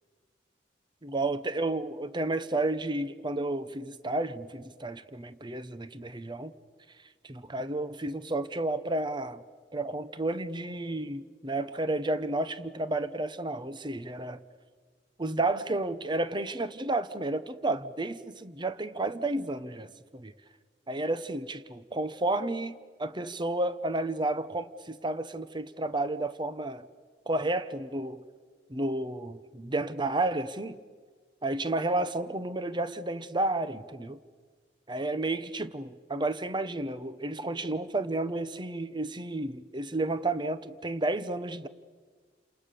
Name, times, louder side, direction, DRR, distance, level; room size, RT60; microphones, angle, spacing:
voice 1, 1.0-6.5 7.2-9.4 9.7-14.4 15.2-20.3 20.9-26.9 27.3-28.2 28.7-30.8 31.4-34.2 34.9-41.7, right 2 dB, 25° right, 1.0 m, -31 dB
30.0 x 28.0 x 6.9 m
head